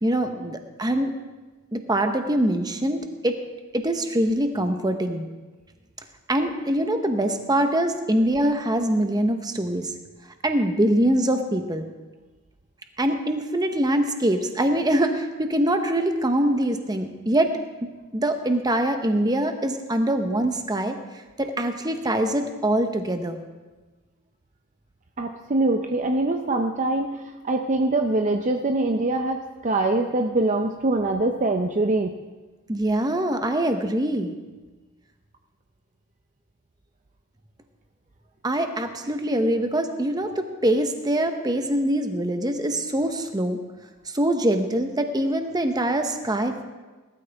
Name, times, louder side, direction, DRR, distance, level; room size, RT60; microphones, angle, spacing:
voice 1, 0.0-1.1 1.7-3.4 3.7-5.3 6.3-9.9 10.4-11.9 13.0-17.5 18.1-21.0 21.4-23.4 32.7-34.3 38.4-43.6 44.1-46.6, right 1 dB, 20° right, 6 dB, 0.9 m, -23 dB
voice 2, 25.2-32.1, right 2 dB, 35° right, 4 dB, 0.6 m, -23 dB
19.0 x 12.5 x 3.5 m, 1.2 s
head